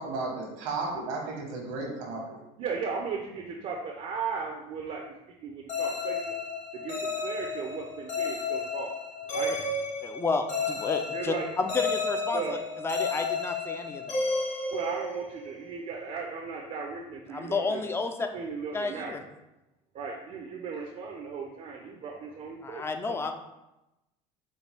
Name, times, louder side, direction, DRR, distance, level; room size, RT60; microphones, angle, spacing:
voice 1, 0.0-2.4, right 3 dB, 80° right, -1 dB, 1.1 m, -34 dB
voice 2, 2.6-5.0 5.4-6.3 6.7-8.9 9.3-9.7 11.1-11.5 12.3-12.6 14.7-17.8 18.3-19.2 19.9-23.3, right 5 dB, 45° right, 1 dB, 0.5 m, -36 dB
sound 1, 5.7-15.5, left 3 dB, 45° left, 1.3 m, -32 dB
voice 3, 10.0-12.4 12.8-14.2 17.3-18.3 18.7-19.2 22.6-23.3, left 4 dB, 15° left, 6 dB, 0.4 m, -31 dB
4.3 x 2.3 x 3.3 m, 0.95 s
supercardioid pair, 90°, 16 cm